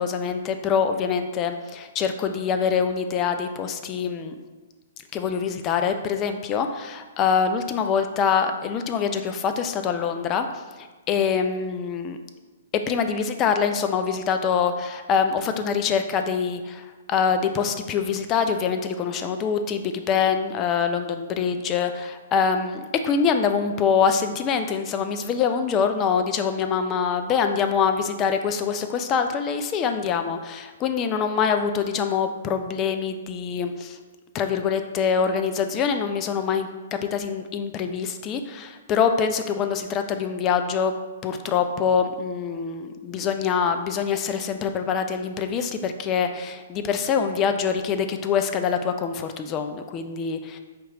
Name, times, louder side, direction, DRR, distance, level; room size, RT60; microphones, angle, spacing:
voice 1, 0.0-4.4 5.1-12.2 12.7-34.0 34.3-40.9 41.2-50.6, left 6 dB, 25° left, 7 dB, 0.4 m, -24 dB
4.4 x 3.1 x 3.7 m, 1.3 s
figure-of-eight pair, 120°, 0 cm